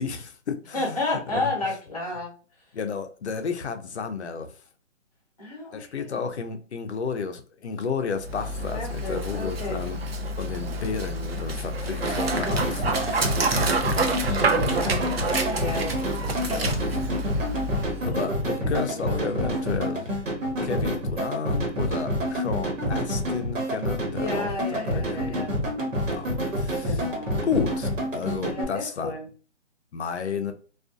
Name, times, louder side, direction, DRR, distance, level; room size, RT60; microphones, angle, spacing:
voice 1, 0.0-1.0 1.3-1.5 2.7-4.5 5.7-13.7 16.5-16.8 18.1-20.2 20.6-25.6 26.1-26.3 26.5-27.0 27.4-29.1 29.9-30.5, left 5 dB, 60° left, 0.5 m, -32 dB
voice 2, 0.7-2.3 5.4-6.2 8.7-9.8 13.8-16.9 17.9-18.1 18.6-19.7 24.1-25.6 26.8-27.5 28.4-29.3, left 2 dB, 30° left, 0.9 m, -33 dB
Dog, 8.2-18.1, right 2 dB, 55° right, 0.5 m, -28 dB
sound 1, 12.0-28.6, equal, 75° right, 1.1 m, -28 dB
2.4 x 2.4 x 2.4 m
hypercardioid pair, 175°, 38 cm